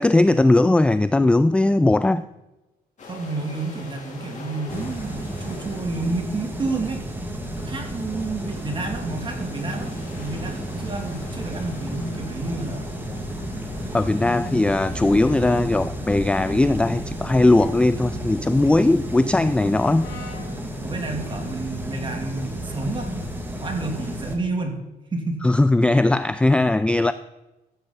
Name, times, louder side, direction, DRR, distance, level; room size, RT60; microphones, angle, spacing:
voice 1, 0.0-2.3 13.9-20.1 25.4-27.1, left 2 dB, 5° left, 13 dB, 0.3 m, -19 dB
sound 1, 3.0-15.5, left 3 dB, 45° left, 3.2 m, -45 dB
voice 2, 3.0-7.0 7.6-12.9 18.7-19.0 20.8-23.1 23.6-24.8 25.1-25.5, right 3 dB, 30° right, 2 dB, 2.5 m, -30 dB
sound 2, 4.7-24.3, equal, 10° right, 2.1 m, -32 dB
Brass instrument, 20.0-24.2, left 6 dB, 85° left, 2.9 m, -49 dB
15.0 x 7.6 x 4.0 m, 1.0 s
cardioid pair, 105°, 17 cm